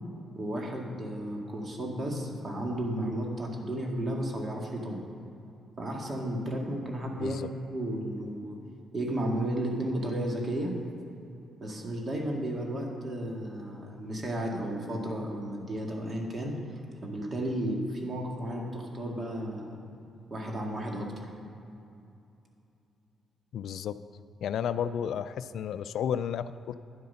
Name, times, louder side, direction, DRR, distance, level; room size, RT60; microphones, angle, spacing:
voice 1, 0.4-5.0 5.8-8.6 8.9-10.7 11.6-16.6 17.0-19.8 20.3-21.3, right 1 dB, 40° right, 0 dB, 2.1 m, -33 dB
voice 2, 7.2-7.5 23.5-23.9 24.4-26.7, left 8 dB, 75° left, 13 dB, 0.3 m, -32 dB
10.5 x 7.8 x 5.7 m, 2.7 s
cardioid pair, 75°, 0 cm